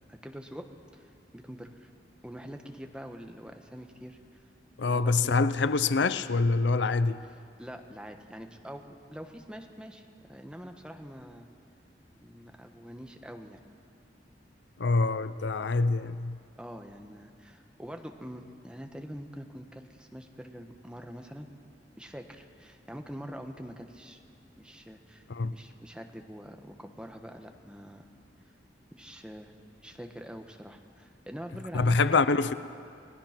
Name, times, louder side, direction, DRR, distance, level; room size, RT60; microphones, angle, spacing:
voice 1, 0.1-0.7 0.9-1.9 2.2-4.2 4.8-5.4 7.6-8.8 9.1-11.5 12.2-13.6 16.6-21.5 22.0-24.2 24.6-28.1 28.9-29.5 29.8-32.2, equal, 5° right, 1.3 m, -44 dB
voice 2, 4.8-7.2 14.8-16.4 25.3-25.5 31.7-32.5, left 3 dB, 85° left, 0.6 m, -25 dB
29.0 x 18.5 x 6.0 m
head